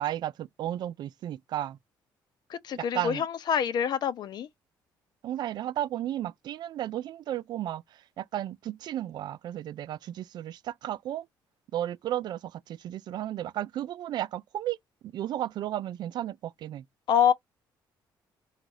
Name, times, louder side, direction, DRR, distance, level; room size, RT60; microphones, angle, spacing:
voice 1, 0.0-1.8 2.8-3.3 5.2-11.3 11.7-14.8 15.0-16.8, right 12 dB, 65° right, 0.4 m, -34 dB
voice 2, 2.5-4.5 17.1-17.3, left 8 dB, 60° left, 0.7 m, -26 dB
3.9 x 2.4 x 4.7 m
cardioid pair, 105°, 8 cm